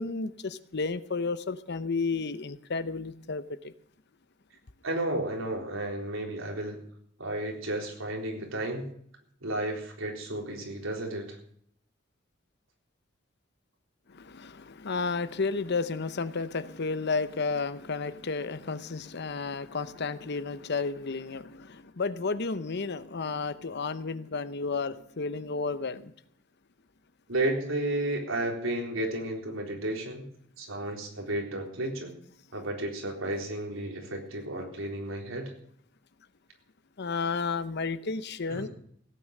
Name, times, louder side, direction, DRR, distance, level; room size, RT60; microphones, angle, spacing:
voice 1, 0.0-3.7 14.1-26.1 37.0-38.7, left 4 dB, 55° left, 14 dB, 0.8 m, -32 dB
voice 2, 4.8-6.8 7.2-8.9 9.4-11.4 27.3-30.3 30.6-32.1 32.5-35.5 38.5-38.7, right 1 dB, 75° right, 1 dB, 3.9 m, -32 dB
16.5 x 9.4 x 6.6 m, 0.66 s
head